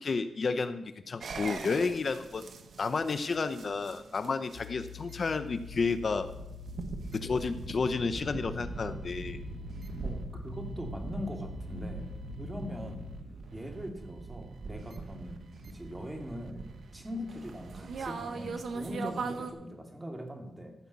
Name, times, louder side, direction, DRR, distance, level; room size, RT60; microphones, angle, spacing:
voice 1, 0.0-2.4 2.8-6.3 7.1-9.4, left 4 dB, 55° left, 10 dB, 0.7 m, -31 dB
sound 1, 1.2-19.5, right 4 dB, 70° right, 1.2 m, -41 dB
sound 2, 4.5-13.2, left 13 dB, 85° left, 2.0 m, -46 dB
voice 2, 10.0-12.1 12.4-13.1 13.5-16.7 16.9-20.7, equal, 15° right, 3 dB, 2.5 m, -41 dB
15.0 x 5.3 x 8.4 m, 0.92 s
cardioid pair, 75°, 0 cm